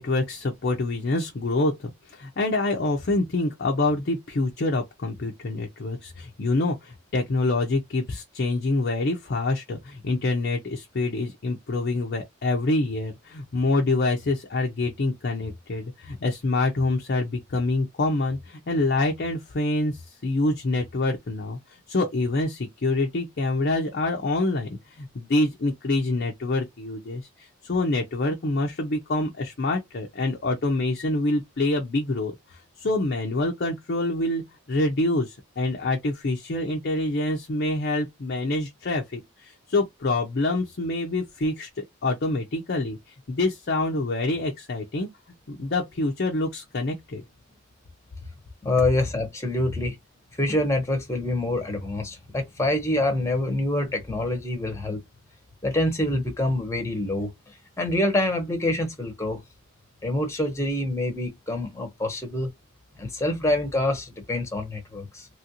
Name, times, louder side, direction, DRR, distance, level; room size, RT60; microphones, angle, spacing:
voice 1, 0.0-34.4 34.7-45.1 45.5-47.2, left 2 dB, 50° left, 0.5 m, -26 dB
voice 2, 48.6-50.0 50.4-55.0 55.6-57.3 57.8-59.4 60.0-62.5 63.0-65.3, left 1 dB, 15° left, 0.9 m, -26 dB
3.0 x 2.5 x 2.8 m
head